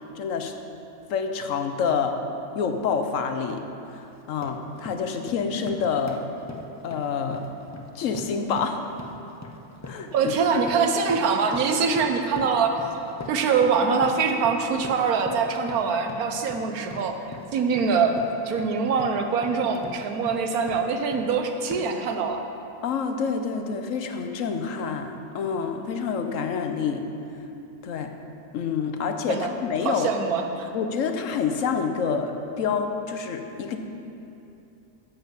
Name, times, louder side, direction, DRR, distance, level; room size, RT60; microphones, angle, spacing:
voice 1, 0.1-0.5 1.1-2.2 2.5-3.6 3.9-6.2 6.8-7.5 7.9-8.8 9.8-10.3 22.8-27.0 27.8-28.1 28.5-30.1 30.7-33.8, left 6 dB, 65° left, 6 dB, 1.1 m, -27 dB
sound 1, 2.7-2.9 3.3-3.7 4.1-21.3 21.7-22.1, left 2 dB, 25° left, 0.3 m, -42 dB
voice 2, 10.1-18.2 18.4-22.4 29.3-29.5 29.8-30.7, right 5 dB, 80° right, 5 dB, 1.3 m, -24 dB
11.0 x 5.6 x 7.5 m, 2.8 s
omnidirectional pair, 1.5 m